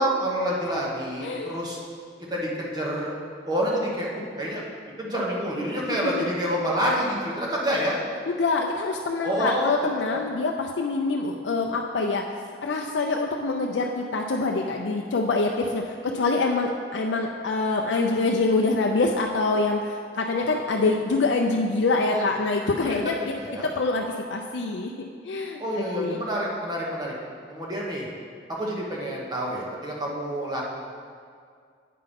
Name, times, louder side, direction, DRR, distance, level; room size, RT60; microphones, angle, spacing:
voice 1, 0.0-1.8 2.3-3.1 3.4-4.1 4.4-4.6 5.0-8.0 9.2-9.7 16.0-16.1 22.1-22.2 22.8-23.0 23.4-23.7 25.6-27.1 27.5-28.1 28.5-30.6, equal, 20° right, -4 dB, 1.1 m, -28 dB
voice 2, 1.2-1.5 5.9-6.2 8.3-12.3 12.6-23.1 23.6-24.9 25.2-26.2, left 3 dB, 80° left, 1 dB, 0.5 m, -25 dB
8.4 x 5.7 x 5.2 m, 2.1 s
head